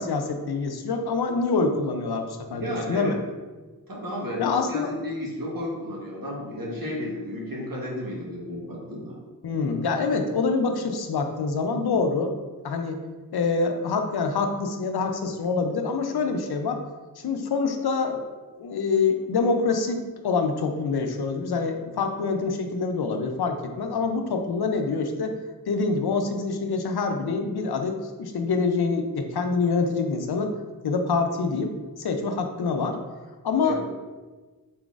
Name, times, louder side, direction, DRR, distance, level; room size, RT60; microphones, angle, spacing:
voice 1, 0.0-2.6 2.9-3.1 4.4-5.0 9.4-12.3 12.6-13.0 13.3-16.8 17.2-18.3 18.6-25.3 25.7-30.5 30.8-31.7 32.0-33.0 33.4-34.0, left 4 dB, 90° left, 5 dB, 0.5 m, -26 dB
voice 2, 2.5-3.2 3.9-9.1 33.6-33.9, equal, 65° right, -4 dB, 1.2 m, -33 dB
3.9 x 3.8 x 2.4 m, 1.3 s
wide cardioid pair, 55°, 37 cm